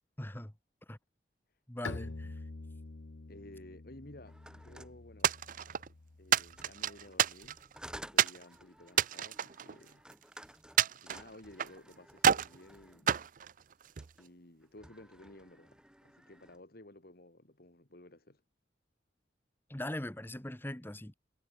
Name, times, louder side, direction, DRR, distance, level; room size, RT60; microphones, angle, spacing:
voice 1, 0.2-0.5 0.9-1.0 1.7-2.4 19.7-21.1, left 1 dB, 10° left, 1.1 m, -40 dB
Bowed string instrument, 1.8-7.4, left 3 dB, 75° left, 1.0 m, -47 dB
voice 2, 3.3-5.7 6.2-7.7 7.9-10.0 10.9-13.3 14.2-18.4, left 1 dB, 55° left, 2.4 m, -55 dB
sound 1, 4.2-5.8 6.5-13.1 13.8-14.3 14.6-16.6, right 1 dB, 5° right, 3.0 m, -54 dB
sound 2, 5.2-5.9 6.3-7.7 8.2-8.4 8.9-10.2 10.8-11.8 12.2-12.6 13.1-14.1, right 9 dB, 45° right, 0.5 m, -29 dB
head